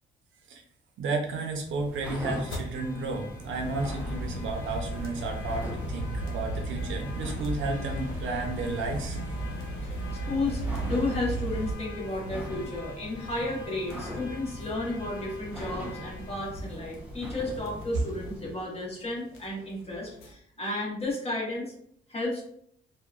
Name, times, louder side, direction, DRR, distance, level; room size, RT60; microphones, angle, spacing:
voice 1, 1.0-9.2, right 3 dB, 75° right, 2 dB, 0.6 m, -32 dB
sound 1, 1.4-18.6, equal, 5° right, 0.7 m, -42 dB
sound 2, 2.0-20.3, left 2 dB, 80° left, 0.6 m, -45 dB
sound 3, 3.5-11.7, right 1 dB, 60° left, 1.2 m, -34 dB
voice 2, 9.8-21.7 22.1-22.5, left 2 dB, 30° left, -4 dB, 1.1 m, -33 dB
2.7 x 2.2 x 2.4 m, 0.67 s
cardioid pair, 90°, 20 cm